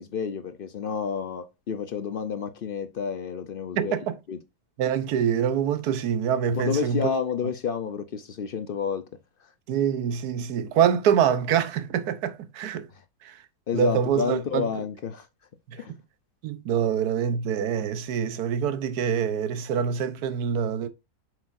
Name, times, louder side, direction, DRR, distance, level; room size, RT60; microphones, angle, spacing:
voice 1, 0.0-4.0 4.3-4.4 6.5-9.0 12.9-13.0 13.7-15.3 15.8-15.9, left 6 dB, 70° left, 0.5 m, -30 dB
voice 2, 3.8-4.1 4.8-7.1 9.7-12.9 13.2-13.4 13.7-14.7 16.4-20.9, right 8 dB, 75° right, 1.3 m, -25 dB
7.8 x 6.2 x 2.5 m
omnidirectional pair, 1.7 m